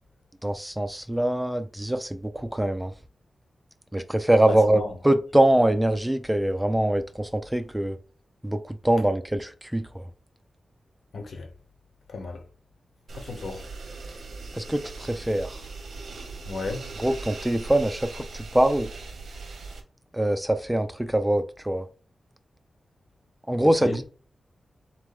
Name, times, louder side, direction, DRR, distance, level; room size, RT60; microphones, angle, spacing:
voice 1, 0.4-2.9 3.9-8.0 8.4-10.0 14.5-15.6 17.0-18.9 20.1-21.8 23.5-24.0, right 1 dB, 5° right, 0.4 m, -24 dB
voice 2, 4.5-4.9 11.1-11.5 12.1-12.4 13.1-13.7 16.5-16.8 23.8-24.0, left 3 dB, 75° left, 1.0 m, -34 dB
sound 1, 13.1-19.8, right 3 dB, 85° right, 1.1 m, -40 dB
4.1 x 3.1 x 3.6 m
wide cardioid pair, 140°, 0 cm